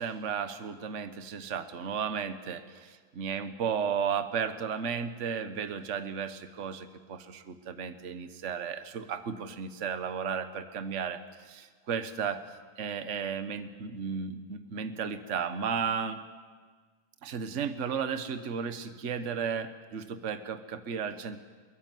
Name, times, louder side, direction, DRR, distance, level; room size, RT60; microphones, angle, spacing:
voice 1, 0.0-12.4 12.8-16.2 17.2-21.4, right 6 dB, 50° right, 10 dB, 1.4 m, -34 dB
22.0 x 21.0 x 9.3 m, 1.5 s
omnidirectional pair, 1.8 m